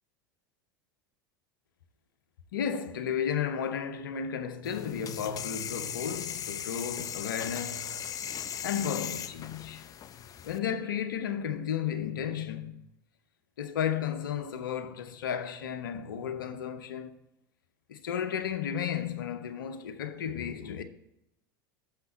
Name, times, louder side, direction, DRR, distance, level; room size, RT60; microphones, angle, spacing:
voice 1, 2.5-8.0 8.6-9.8 10.4-12.8 13.6-17.1 17.9-20.8, left 8 dB, 70° left, 0.8 m, -33 dB
sound 1, 4.6-10.6, left 9 dB, 30° left, 0.5 m, -38 dB
6.6 x 5.7 x 7.4 m
figure-of-eight pair, 80°, 11 cm